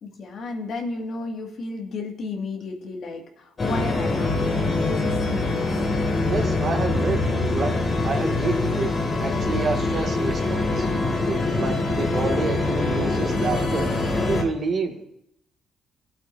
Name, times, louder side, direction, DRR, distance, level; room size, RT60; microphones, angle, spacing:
voice 1, 0.0-5.8, left 3 dB, 65° left, 1 dB, 2.1 m, -33 dB
sound 1, 3.6-14.4, left 2 dB, 40° left, 2.4 m, -24 dB
voice 2, 6.3-8.9 9.2-10.9 11.3-13.9 14.3-15.1, right 4 dB, 50° right, 2 dB, 2.1 m, -28 dB
17.0 x 8.0 x 2.7 m, 0.76 s
cardioid pair, 90°, 0 cm